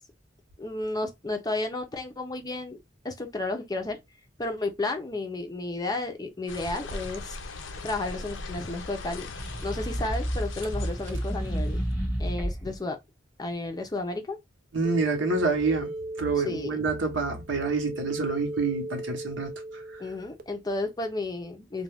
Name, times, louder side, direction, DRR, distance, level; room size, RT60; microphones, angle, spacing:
voice 1, 0.6-2.8 3.0-4.0 4.4-7.4 7.8-9.3 9.6-11.8 12.2-13.0 13.4-14.4 16.4-16.7 20.0-21.8, left 2 dB, 20° left, 0.5 m, -32 dB
sound 1, 6.5-11.9, left 3 dB, 80° left, 0.5 m, -40 dB
sound 2, 9.2-12.8, equal, ahead, 1.1 m, -31 dB
voice 2, 14.7-15.9 16.2-19.5, right 4 dB, 75° right, 1.0 m, -27 dB
sound 3, 14.8-20.4, right 2 dB, 45° right, 0.4 m, -37 dB
2.4 x 2.2 x 3.3 m
head